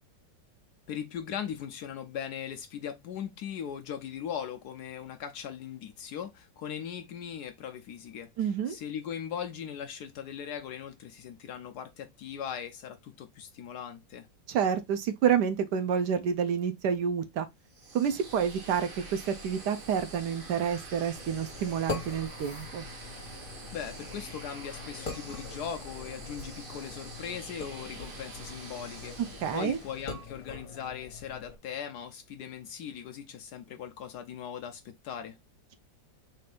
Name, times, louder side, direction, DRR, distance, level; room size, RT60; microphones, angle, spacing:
voice 1, 0.9-14.3 23.7-29.2 29.5-35.4, left 8 dB, 70° left, 1.0 m, -39 dB
voice 2, 8.4-8.8 14.5-17.5 17.9-22.8 29.4-29.8, right 8 dB, 70° right, 1.1 m, -29 dB
sound 1, 17.7-30.4, right 2 dB, 40° right, 0.8 m, -46 dB
sound 2, 21.1-31.6, left 4 dB, 50° left, 1.6 m, -43 dB
4.3 x 2.5 x 4.9 m
omnidirectional pair, 2.0 m